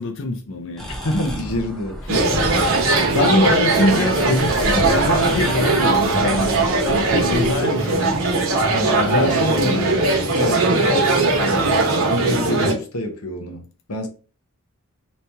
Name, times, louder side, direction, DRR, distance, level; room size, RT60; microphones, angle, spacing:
voice 1, 0.0-0.9 1.1-1.2 2.1-2.2 2.8-8.2 8.9-9.9 12.1-12.3, left 2 dB, 60° left, 0.5 m, -24 dB
sound 1, 0.8-7.5, equal, ahead, 0.6 m, -31 dB
voice 2, 0.9-2.0 8.7-9.9 10.3-14.1, equal, 85° left, 0.8 m, -27 dB
sound 2, 2.1-12.7, right 3 dB, 60° right, 0.8 m, -19 dB
3.0 x 2.8 x 3.4 m
head